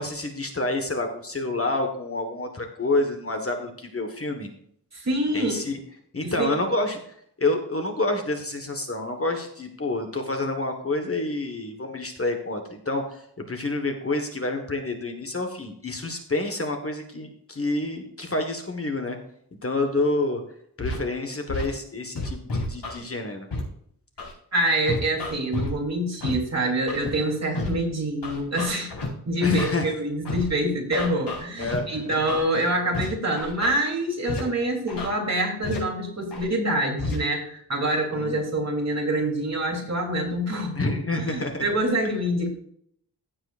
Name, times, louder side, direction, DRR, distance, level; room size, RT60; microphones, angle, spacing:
voice 1, 0.0-4.5 5.3-5.8 6.1-19.2 19.6-20.4 20.8-23.5 29.4-29.9 31.6-32.2 38.1-38.3 40.7-41.6, left 2 dB, 35° left, 4 dB, 1.5 m, -28 dB
voice 2, 4.9-5.5 6.2-6.5 24.5-28.9 29.2-40.7 41.1-42.5, right 1 dB, 40° right, -1 dB, 3.3 m, -26 dB
Scratching (performance technique), 20.8-21.0 21.5-21.7 22.2-23.0 23.5-23.6 24.2-24.3 24.9-25.7 26.2-26.3 26.9-27.1 27.6-27.7 28.2-29.1 29.6-29.7 30.3-30.4 30.9-31.8 32.3-32.4 32.9-33.1 33.4-33.7 34.3-34.4 34.9-35.1 35.6-35.8 36.3-36.5 37.0-37.2, left 3 dB, 75° left, 4.7 m, -30 dB
16.0 x 7.9 x 2.5 m, 0.67 s
wide cardioid pair, 150°, 41 cm